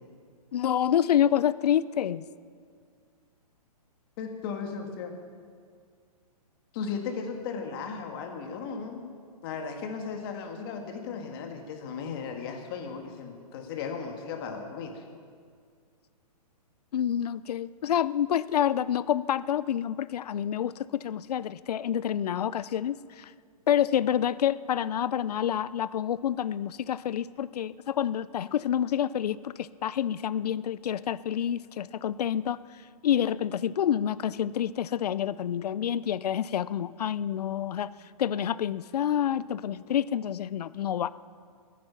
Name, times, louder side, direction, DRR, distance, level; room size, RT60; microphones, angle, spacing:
voice 1, 0.5-2.2 16.9-23.3 23.7-32.6 33.0-37.9 38.2-41.1, left 10 dB, 80° left, 18 dB, 0.5 m, -28 dB
voice 2, 4.2-5.1 6.7-9.1 9.4-15.0, left 5 dB, 35° left, 4 dB, 1.9 m, -36 dB
21.0 x 9.4 x 5.8 m, 2.1 s
hypercardioid pair, 155°, 20 cm